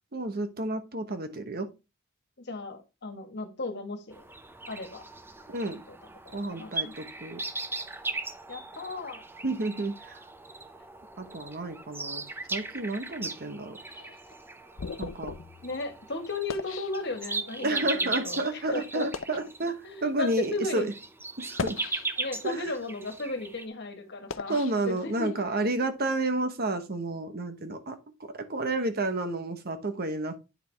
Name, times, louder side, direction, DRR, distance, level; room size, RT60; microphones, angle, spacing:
voice 1, 0.1-1.7 5.5-5.8 6.3-7.4 9.4-10.2 11.2-12.2 12.5-13.8 15.0-15.3 17.6-20.9 21.4-21.8 22.4-22.7 24.5-30.4, right 2 dB, 50° right, 1.2 m, -31 dB
voice 2, 2.4-4.2 4.7-5.0 5.6-6.0 6.3-6.9 8.5-9.2 15.6-19.1 19.8-20.9 22.2-24.6 24.9-25.3, left 3 dB, 55° left, 1.7 m, -35 dB
sound 1, 4.1-23.6, right 3 dB, 10° right, 0.6 m, -38 dB
sound 2, 13.9-17.6 18.3-18.4 19.0-19.5 20.3-20.4 21.4-22.5 23.0-25.5, left 4 dB, 75° left, 0.7 m, -40 dB
9.4 x 4.8 x 3.5 m
head